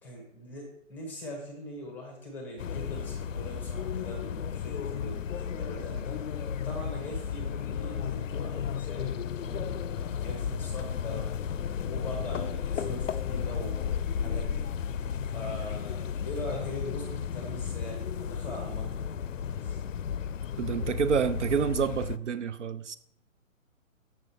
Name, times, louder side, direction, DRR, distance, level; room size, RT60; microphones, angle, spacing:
voice 1, 0.0-6.2 6.6-9.8 10.1-11.3 11.8-14.7 15.2-19.2 19.6-19.8, left 1 dB, 5° left, 1 dB, 0.7 m, -42 dB
sound 1, 2.6-22.2, left 7 dB, 70° left, 0.5 m, -33 dB
voice 2, 20.6-23.0, right 7 dB, 60° right, 12 dB, 0.6 m, -28 dB
6.8 x 5.3 x 4.1 m, 0.74 s
figure-of-eight pair, 140°, 41 cm